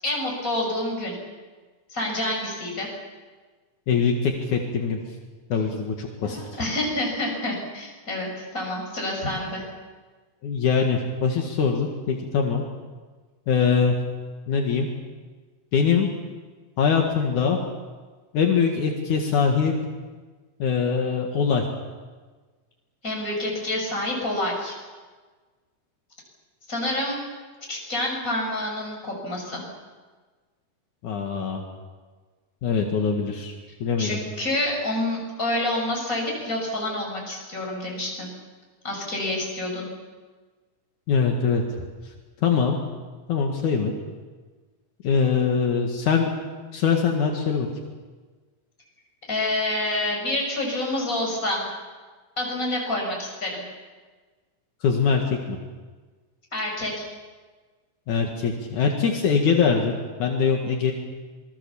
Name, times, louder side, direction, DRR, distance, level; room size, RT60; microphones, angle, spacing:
voice 1, 0.0-1.2 1.9-2.9 6.2-9.6 23.0-24.7 26.7-27.2 27.7-29.6 34.0-38.3 38.8-39.9 49.3-51.7 52.4-53.6 56.5-57.1, left 1 dB, 25° left, -1 dB, 7.1 m, -28 dB
voice 2, 3.9-5.0 5.5-6.4 10.4-12.6 13.5-13.9 14.5-14.9 15.7-16.1 16.8-17.6 18.3-19.7 20.6-21.6 31.0-31.6 32.6-33.5 33.8-34.2 41.1-41.6 42.4-42.8 43.3-43.9 45.0-46.3 46.7-47.7 54.8-55.6 58.1-59.9 60.2-60.9, left 6 dB, 75° left, 1 dB, 3.3 m, -22 dB
27.0 x 21.0 x 7.1 m, 1.4 s
omnidirectional pair, 3.6 m